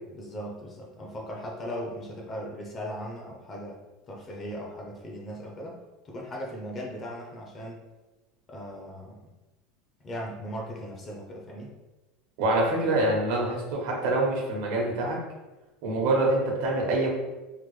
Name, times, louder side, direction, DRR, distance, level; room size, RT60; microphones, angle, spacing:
voice 1, 0.1-3.8 4.1-5.8 6.0-7.8 8.5-9.3 10.0-11.8, equal, 25° left, -1 dB, 0.6 m, -38 dB
voice 2, 12.4-15.2 15.8-17.1, right 2 dB, 70° right, -1 dB, 1.0 m, -25 dB
3.6 x 2.1 x 3.1 m, 1.1 s
supercardioid pair, 155°, 0 cm